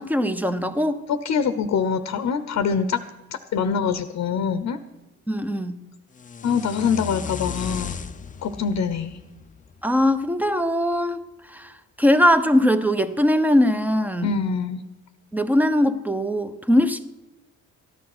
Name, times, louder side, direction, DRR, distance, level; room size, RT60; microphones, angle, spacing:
voice 1, 0.0-1.0 5.3-5.8 9.8-11.2 11.5-11.7 12.0-14.3 15.3-17.1, equal, 5° right, 10 dB, 0.8 m, -20 dB
voice 2, 1.1-3.0 3.5-4.8 6.4-8.0 8.4-9.2 14.2-14.8, left 6 dB, 65° left, 10 dB, 0.8 m, -24 dB
sound 1, 6.1-10.3, left 5 dB, 25° left, 0.6 m, -36 dB
13.5 x 10.0 x 6.0 m, 1.0 s
cardioid pair, 90°, 30 cm